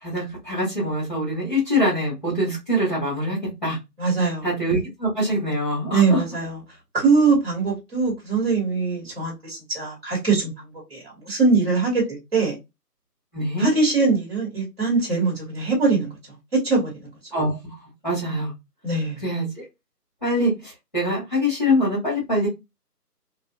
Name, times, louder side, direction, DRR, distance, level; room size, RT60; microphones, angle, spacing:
voice 1, 0.0-3.8 4.4-6.2 13.3-13.7 17.3-17.6 18.0-18.5 19.2-19.6 20.2-22.5, equal, ahead, 1.7 m, -24 dB
voice 2, 4.0-4.5 5.9-6.6 6.9-10.5 10.9-12.5 13.6-16.1 16.5-17.1 18.8-19.2, right 4 dB, 35° right, 2.1 m, -22 dB
4.0 x 2.7 x 2.4 m
figure-of-eight pair, 155°, 49 cm